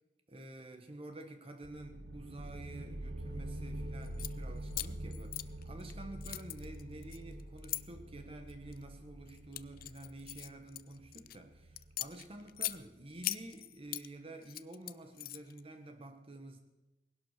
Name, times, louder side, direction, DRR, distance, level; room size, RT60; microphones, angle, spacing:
voice 1, 0.3-16.6, right 2 dB, 35° right, 6 dB, 1.3 m, -49 dB
sound 1, 1.6-13.0, right 1 dB, 90° right, 1.6 m, -46 dB
sound 2, 4.0-4.3 4.7-5.9 6.2-7.8 8.5-8.8 9.3-11.4 11.8-12.8 13.2-14.1 14.4-15.6, left 16 dB, 55° left, 0.5 m, -40 dB
19.0 x 11.5 x 6.6 m, 1.0 s
head